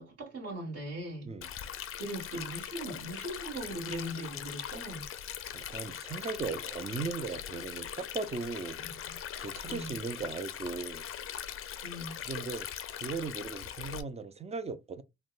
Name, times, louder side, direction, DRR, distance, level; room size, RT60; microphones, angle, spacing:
voice 1, 0.0-1.3 2.0-5.1 8.8-9.2 9.7-10.0 11.8-12.2, right 1 dB, 50° right, 1.5 m, -40 dB
Stream, 1.4-14.0, left 9 dB, 45° left, 0.4 m, -41 dB
voice 2, 5.5-8.8 9.4-11.1 12.3-12.7 12.9-15.0, right 4 dB, 20° right, 0.3 m, -38 dB
3.4 x 2.1 x 2.3 m
cardioid pair, 90°, 30 cm